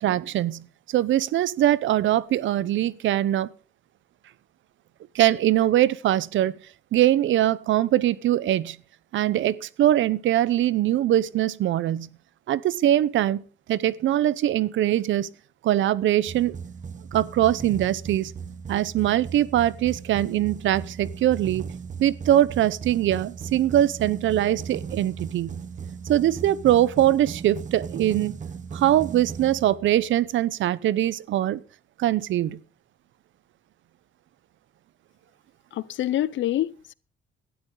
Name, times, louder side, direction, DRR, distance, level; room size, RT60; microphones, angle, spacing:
voice 1, 0.0-3.5 5.1-6.5 6.9-8.8 9.1-12.1 12.5-13.4 13.7-15.3 15.6-16.6 17.1-18.3 18.7-21.6 22.0-25.6 26.1-28.4 28.7-31.6 32.0-32.6, right 12 dB, 75° right, 0.8 m, -22 dB
sound 1, 16.3-30.2, right 6 dB, 40° right, 1.1 m, -37 dB
voice 2, 35.7-36.9, left 13 dB, 70° left, 0.7 m, -26 dB
17.0 x 12.5 x 3.9 m
cardioid pair, 90°, 20 cm